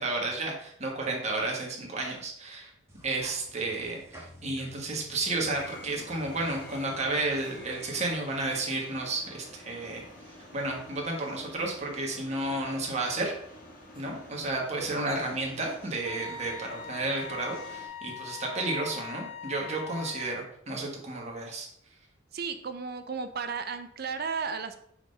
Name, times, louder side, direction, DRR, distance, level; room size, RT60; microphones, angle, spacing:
voice 1, 0.0-2.7 3.0-10.0 10.5-13.3 14.0-21.7, right 2 dB, 35° right, -1 dB, 1.3 m, -32 dB
sound 1, 2.9-8.1, right 1 dB, 15° right, 1.4 m, -50 dB
sound 2, 5.4-17.9, left 1 dB, 45° left, 1.5 m, -49 dB
Wind instrument woodwind instrument, 16.1-20.3, left 6 dB, 85° left, 0.7 m, -42 dB
voice 2, 22.3-24.8, right 5 dB, 50° right, 9 dB, 0.6 m, -34 dB
4.7 x 3.8 x 5.3 m, 0.69 s
head